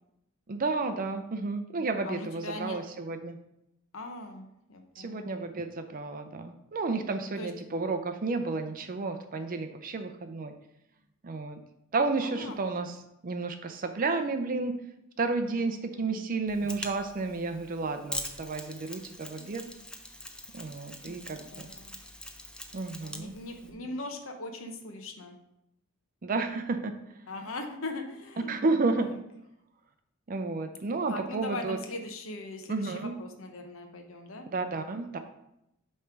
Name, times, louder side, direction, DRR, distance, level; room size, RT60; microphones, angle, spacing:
voice 1, 0.5-3.4 5.0-10.5 11.2-11.6 11.9-13.0 13.2-14.8 15.2-19.6 20.5-21.7 22.7-23.3 26.2-26.9 28.5-29.1 30.3-31.8 32.7-33.2 34.5-35.2, right 3 dB, 45° right, 7 dB, 0.5 m, -31 dB
voice 2, 2.0-2.8 3.9-5.4 7.4-7.5 12.2-12.6 15.4-16.2 21.0-21.2 21.5-21.9 23.0-25.4 27.3-28.5 29.0-29.1 31.1-34.5, left 2 dB, 70° left, 4 dB, 0.9 m, -40 dB
Mechanisms, 16.5-23.7, left 1 dB, 5° left, 0.6 m, -43 dB
8.4 x 3.3 x 5.8 m, 0.83 s
head